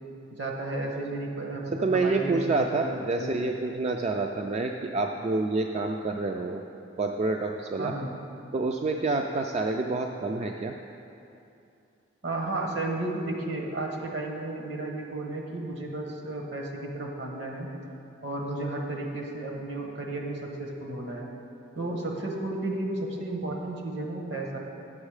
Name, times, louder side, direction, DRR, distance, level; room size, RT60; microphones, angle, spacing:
voice 1, 0.4-3.4 7.8-8.1 12.2-17.7 18.2-21.3 21.7-24.6, right 2 dB, 65° right, 1 dB, 1.3 m, -33 dB
voice 2, 1.7-6.6 7.0-7.9 8.5-10.7, right 3 dB, 35° right, 3 dB, 0.3 m, -28 dB
8.9 x 7.3 x 4.9 m, 2.7 s
head